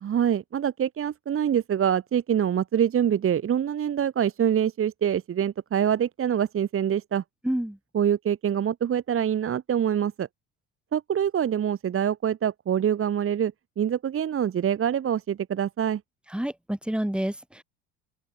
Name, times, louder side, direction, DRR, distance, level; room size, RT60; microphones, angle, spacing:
voice 1, 0.0-7.2 7.9-10.3 10.9-16.0, right 9 dB, 35° right, 1.9 m, -25 dB
voice 2, 7.4-7.8 16.3-17.6, right 1 dB, 5° right, 3.6 m, -28 dB
open air
hypercardioid pair, 85°, 38 cm